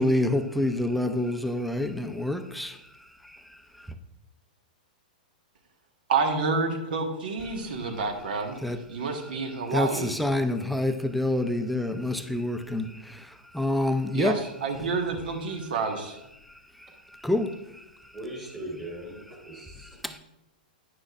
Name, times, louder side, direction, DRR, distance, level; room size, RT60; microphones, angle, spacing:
voice 1, 0.0-2.8 8.6-8.8 9.7-14.5 17.1-17.8 20.0-20.2, left 1 dB, ahead, 0.4 m, -27 dB
voice 2, 6.1-8.6 8.9-10.1 14.1-16.2, right 4 dB, 75° right, 1.3 m, -29 dB
voice 3, 18.1-20.2, right 1 dB, 20° right, 1.8 m, -40 dB
9.7 x 6.2 x 2.4 m
hypercardioid pair, 140°, 5 cm